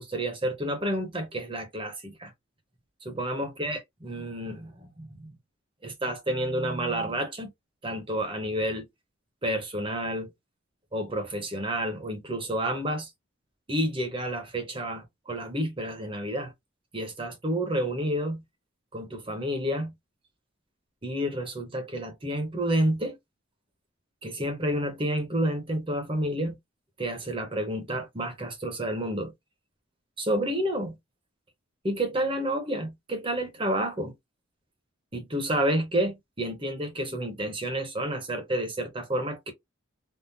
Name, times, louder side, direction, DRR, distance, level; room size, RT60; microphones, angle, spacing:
voice 1, 0.0-2.3 3.0-5.3 5.8-7.5 7.8-8.9 9.4-10.3 10.9-13.1 13.7-16.5 16.9-18.4 18.9-19.9 21.0-23.2 24.2-26.6 27.0-29.3 30.2-31.0 31.8-34.1 35.1-39.5, right 1 dB, 25° right, 0.9 m, -30 dB
3.6 x 2.2 x 2.7 m
head